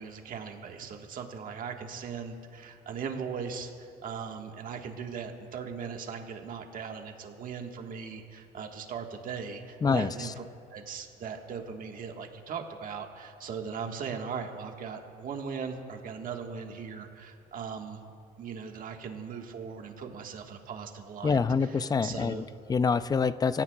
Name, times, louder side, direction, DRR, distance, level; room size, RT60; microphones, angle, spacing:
voice 1, 0.0-10.4 10.7-18.1 18.4-22.4, right 6 dB, 55° right, 3 dB, 1.5 m, -39 dB
voice 2, 9.8-10.3 21.2-23.6, left 5 dB, 25° left, 14 dB, 0.4 m, -26 dB
26.0 x 16.5 x 2.3 m, 2.4 s
cardioid pair, 110°, 17 cm